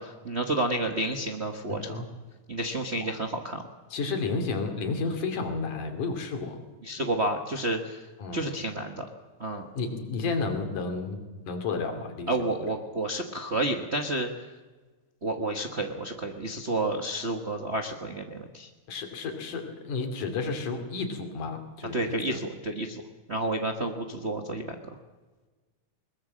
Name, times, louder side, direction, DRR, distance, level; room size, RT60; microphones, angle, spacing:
voice 1, 0.0-2.0 2.5-3.6 6.8-8.0 8.3-9.1 9.4-9.6 12.3-14.3 15.2-18.7 21.9-23.0 23.3-24.7, right 2 dB, 80° right, 4 dB, 0.6 m, -30 dB
voice 2, 1.7-2.1 3.0-3.1 3.9-6.6 8.2-8.4 9.8-11.2 11.5-12.7 18.9-22.4, left 4 dB, 90° left, 5 dB, 4.1 m, -32 dB
21.5 x 20.5 x 7.6 m, 1.3 s
omnidirectional pair, 3.5 m